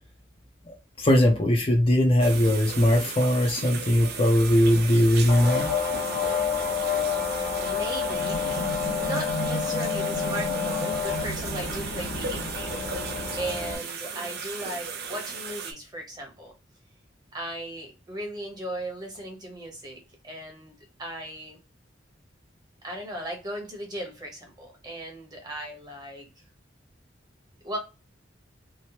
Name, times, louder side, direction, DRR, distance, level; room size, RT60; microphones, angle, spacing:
voice 1, 0.7-5.7, left 1 dB, 30° left, 0.5 m, -20 dB
sound 1, 2.2-15.7, right 5 dB, 60° right, 0.5 m, -36 dB
sound 2, 5.3-13.7, left 6 dB, 80° left, 1.0 m, -29 dB
voice 2, 7.6-12.9 13.3-16.5 17.3-20.0 20.2-20.7 21.0-21.6 22.8-26.3 27.6-27.8, right 1 dB, 20° right, 0.9 m, -37 dB
2.9 x 2.1 x 2.8 m
head